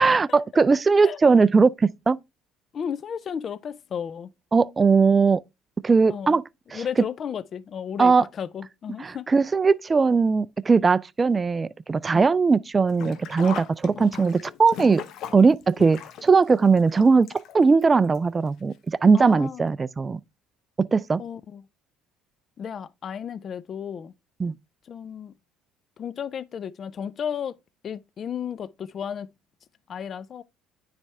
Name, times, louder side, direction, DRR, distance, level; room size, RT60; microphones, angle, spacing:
voice 1, 0.0-2.2 4.5-5.4 5.8-6.4 6.7-6.8 8.0-8.3 9.0-15.0 15.3-17.3 17.5-18.7 19.0-20.2 20.8-21.2 24.4-24.5, right 4 dB, 25° right, 0.3 m, -19 dB
voice 2, 2.7-4.3 6.1-6.4 6.7-9.3 12.1-12.2 14.0-14.1 19.1-19.7 21.2-21.6 22.6-24.1 24.9-25.3 26.0-27.6 27.8-29.3 29.9-30.4, left 8 dB, 45° left, 0.4 m, -33 dB
Sink (filling or washing), 12.9-17.8 18.1-18.2 19.3-19.4 19.7-19.8, left 9 dB, 60° left, 0.7 m, -39 dB
9.8 x 3.4 x 3.3 m
supercardioid pair, 90°, 0 cm